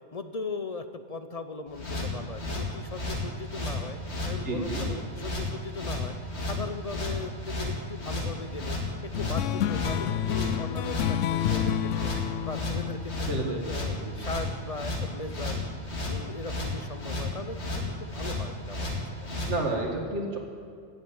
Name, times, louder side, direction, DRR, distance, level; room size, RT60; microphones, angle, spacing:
voice 1, 0.1-8.8 9.0-12.1 12.4-15.6 15.9-19.5, left 3 dB, 40° left, 9 dB, 0.6 m, -39 dB
sound 1, 1.7-19.5, left 2 dB, 60° left, 2.6 m, -33 dB
voice 2, 4.4-4.8 13.3-13.6 13.9-14.2 19.4-20.4, right 2 dB, 65° right, 1 dB, 2.3 m, -30 dB
sound 2, 9.1-14.1, left 10 dB, 80° left, 0.9 m, -30 dB
17.0 x 8.0 x 8.8 m, 2.3 s
omnidirectional pair, 1.3 m